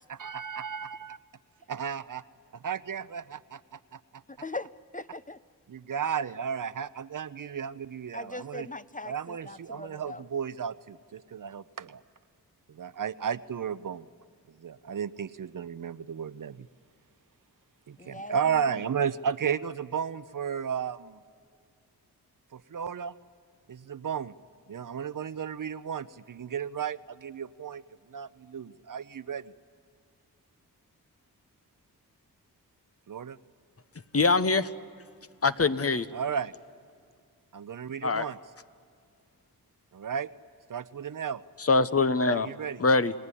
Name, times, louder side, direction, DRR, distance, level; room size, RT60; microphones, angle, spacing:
voice 1, 0.1-1.2 1.7-2.2 2.5-4.2 5.7-8.7 9.0-12.0 12.7-14.1 14.6-16.7 17.9-21.2 22.5-23.1 23.7-24.3 24.7-27.8 28.1-29.5 33.1-33.4 36.1-36.5 37.5-38.4 39.9-40.3 40.7-41.4 42.3-42.8, right 7 dB, 55° right, 15 dB, 0.8 m, -34 dB
voice 2, 4.3-5.4 8.1-10.2 18.0-18.3, left 2 dB, 20° left, 13 dB, 0.7 m, -40 dB
voice 3, 34.1-34.7 35.4-36.1 38.0-38.3 41.6-42.5 42.8-43.1, left 3 dB, 40° left, 12 dB, 1.0 m, -23 dB
30.0 x 17.5 x 9.9 m, 2.2 s
cardioid pair, 45°, 38 cm